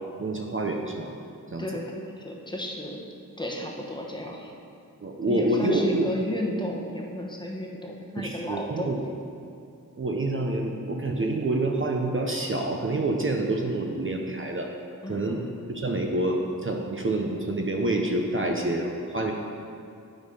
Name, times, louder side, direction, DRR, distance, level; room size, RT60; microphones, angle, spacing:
voice 1, 0.2-1.1 1.5-1.6 5.0-6.1 8.2-9.0 10.0-14.7 15.1-15.4 15.7-19.3, right 2 dB, 35° right, 1 dB, 0.7 m, -27 dB
voice 2, 1.6-3.0 3.4-4.6 5.3-8.9 15.0-15.5, left 1 dB, 10° left, -1 dB, 1.1 m, -33 dB
11.0 x 4.1 x 5.4 m, 2.5 s
wide cardioid pair, 85°, 37 cm